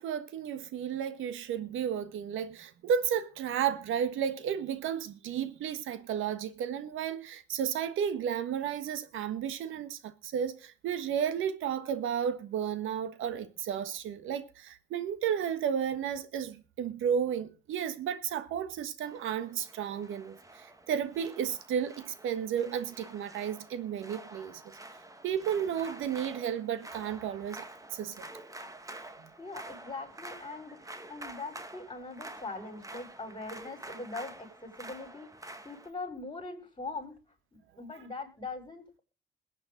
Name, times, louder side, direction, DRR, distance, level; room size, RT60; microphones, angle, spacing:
voice 1, 0.0-24.8 25.2-28.2, right 8 dB, 85° right, 1.4 m, -33 dB
sound 1, 19.0-35.9, right 2 dB, 15° right, 1.6 m, -48 dB
voice 2, 29.4-35.3 35.6-37.2 37.8-39.0, left 3 dB, 25° left, 6.0 m, -41 dB
21.5 x 8.4 x 3.9 m
cardioid pair, 90°, 20 cm